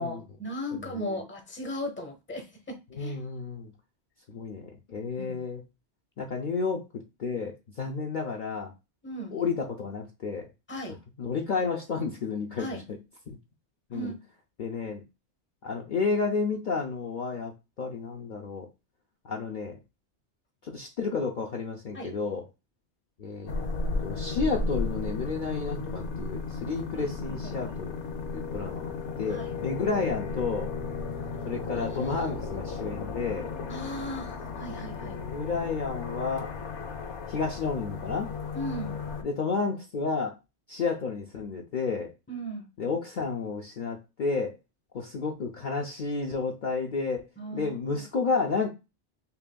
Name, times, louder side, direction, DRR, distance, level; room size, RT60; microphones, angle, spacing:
voice 1, 0.0-3.2 5.2-5.4 9.0-9.4 10.7-11.0 12.6-12.9 13.9-14.3 21.9-22.1 26.9-27.7 29.3-29.6 31.7-32.3 33.7-35.2 38.5-39.0 42.3-42.7 47.4-48.1, equal, 10° left, 4 dB, 0.8 m, -37 dB
voice 2, 0.7-1.2 2.9-3.7 4.3-5.6 6.2-8.7 9.3-10.5 11.2-12.7 13.3-13.4 13.9-14.1 14.6-15.0 15.6-17.5 17.8-18.7 19.2-19.8 20.6-22.4 23.2-23.5 24.0-27.9 28.3-30.7 31.5-33.5 34.7-36.5 37.3-38.3 39.2-40.4 40.7-42.1 42.8-44.5 44.9-47.3 47.5-48.7, left 4 dB, 55° left, 0 dB, 0.7 m, -31 dB
sound 1, 23.5-39.2, left 4 dB, 85° left, 1.0 m, -34 dB
5.5 x 2.6 x 2.2 m, 0.25 s
omnidirectional pair, 1.2 m